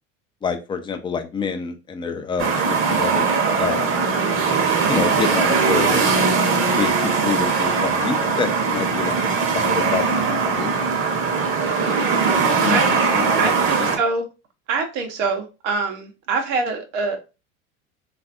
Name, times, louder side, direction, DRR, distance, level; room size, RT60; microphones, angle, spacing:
voice 1, 0.4-4.0 4.9-6.1 6.7-10.9 12.2-12.8 13.1-14.0, left 5 dB, 15° left, 0.4 m, -28 dB
sound 1, 2.4-14.0, right 5 dB, 35° right, 0.9 m, -20 dB
voice 2, 13.4-14.3 14.7-17.2, right 4 dB, 70° right, 0.9 m, -24 dB
3.2 x 2.5 x 2.4 m
hypercardioid pair, 80°, 38 cm